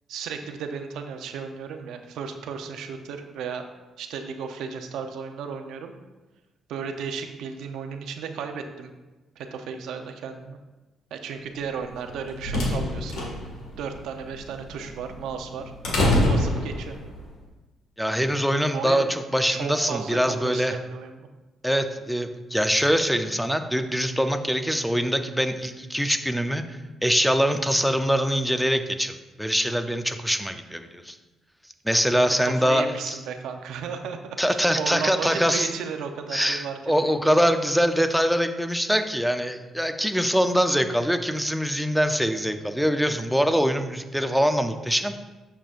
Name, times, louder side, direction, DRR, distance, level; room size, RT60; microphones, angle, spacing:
voice 1, 0.1-3.7 4.0-5.9 6.7-8.9 9.4-10.6 11.1-13.3 13.8-15.7 16.3-17.0 18.7-19.1 19.5-20.2 20.4-21.3 32.1-37.2, right 6 dB, 85° right, 6 dB, 0.7 m, -34 dB
sound 1, 11.9-17.2, left 1 dB, 80° left, 1.8 m, -26 dB
voice 2, 18.0-20.8 21.6-26.6 27.0-31.2 31.8-33.2 34.4-35.7 36.3-45.1, equal, ahead, 7 dB, 0.6 m, -23 dB
8.6 x 6.9 x 2.5 m, 1.1 s
cardioid pair, 90°, 0 cm